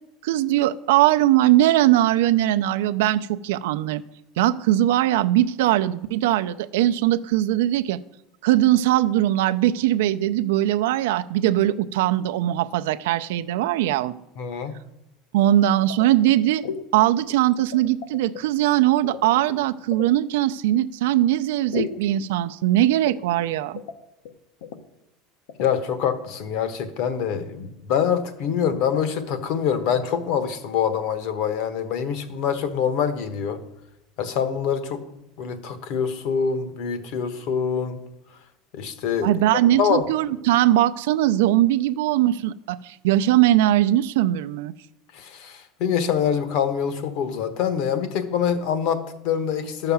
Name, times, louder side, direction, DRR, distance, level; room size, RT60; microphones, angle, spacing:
voice 1, 0.2-4.0 4.4-8.0 8.4-14.1 15.3-16.6 16.9-23.8 39.2-44.7, right 14 dB, 90° right, 0.5 m, -20 dB
voice 2, 14.4-14.8 25.6-33.6 34.2-35.0 35.4-38.0 38.7-39.3 39.8-40.1 45.1-49.9, left 7 dB, 50° left, 1.1 m, -25 dB
sound 1, 15.9-16.4 16.6-16.8 17.2-18.4 19.0-20.1 21.7-22.1 23.1-23.5 23.8-24.0 24.3-24.4 24.6-24.8 25.5-25.7, left 7 dB, 85° left, 1.1 m, -34 dB
12.5 x 5.7 x 7.1 m
cardioid pair, 175°, 0 cm